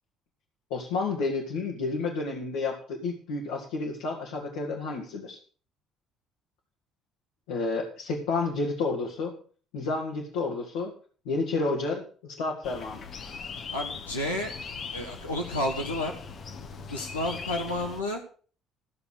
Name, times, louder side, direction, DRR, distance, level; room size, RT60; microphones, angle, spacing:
voice 1, 0.7-5.4 7.5-9.4 9.7-10.9 11.3-13.0, left 3 dB, 65° left, -2 dB, 2.0 m, -30 dB
sound 1, 12.6-18.0, left 5 dB, 45° left, 1.3 m, -39 dB
voice 2, 13.7-14.5 14.9-16.1 16.9-18.2, left 1 dB, 85° left, -1 dB, 1.2 m, -31 dB
14.5 x 7.0 x 6.4 m, 0.42 s
figure-of-eight pair, 50°, 0 cm